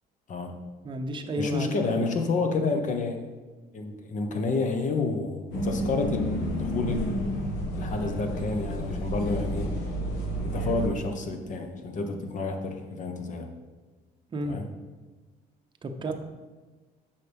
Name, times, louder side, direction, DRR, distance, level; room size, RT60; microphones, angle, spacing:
voice 1, 0.8-1.7 2.0-2.1 14.3-14.7 15.8-16.1, right 1 dB, 30° right, 5 dB, 0.7 m, -32 dB
voice 2, 1.4-3.2 3.7-7.4 7.7-9.7 10.4-13.5 14.4-14.7, left 3 dB, 50° left, 5 dB, 1.0 m, -29 dB
sound 1, 5.5-10.9, equal, 85° left, 1.3 m, -30 dB
8.3 x 5.7 x 3.4 m, 1.3 s
cardioid pair, 110°, 17 cm